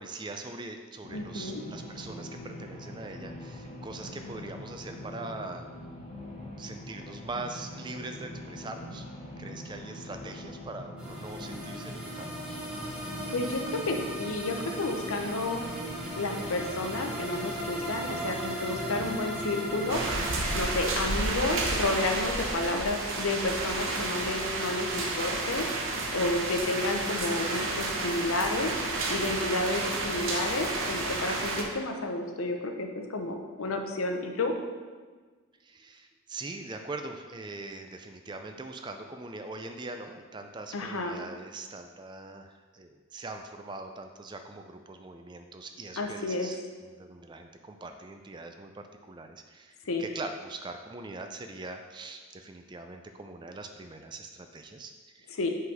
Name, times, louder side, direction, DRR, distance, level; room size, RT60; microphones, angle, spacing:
voice 1, 0.0-5.6 6.6-9.1 9.4-12.7 26.6-26.9 35.6-55.4, right 2 dB, 20° right, 6 dB, 0.3 m, -42 dB
sound 1, 1.0-20.6, left 1 dB, 30° left, 0.9 m, -43 dB
voice 2, 1.1-1.6 13.3-15.7 16.1-25.7 26.1-28.7 29.1-34.5 40.7-41.2 46.0-46.5 49.9-50.1 55.3-55.5, left 2 dB, 80° left, 4 dB, 0.7 m, -31 dB
sound 2, 11.0-20.9, right 1 dB, 5° right, 0.8 m, -37 dB
sound 3, 19.9-31.6, right 2 dB, 70° right, 0.9 m, -31 dB
5.4 x 3.9 x 5.3 m, 1.4 s
head